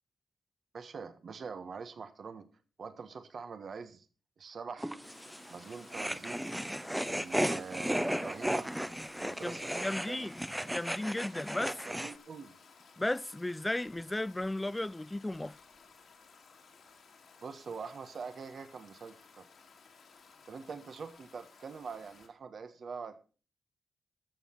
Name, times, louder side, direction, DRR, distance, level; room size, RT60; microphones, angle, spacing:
voice 1, 0.7-2.5 2.8-4.1 4.4-5.0 5.5-6.4 7.1-8.7 9.2-10.3 11.7-12.5 17.4-19.4 20.5-23.2, right 5 dB, 60° right, 1.4 m, -44 dB
sound 1, 4.8-12.1, equal, 5° right, 0.8 m, -35 dB
Stream, 5.0-22.3, left 5 dB, 75° left, 3.1 m, -58 dB
voice 2, 9.4-11.7 13.0-15.6, left 1 dB, 15° left, 0.5 m, -35 dB
14.0 x 6.8 x 5.8 m
cardioid pair, 70°, 0 cm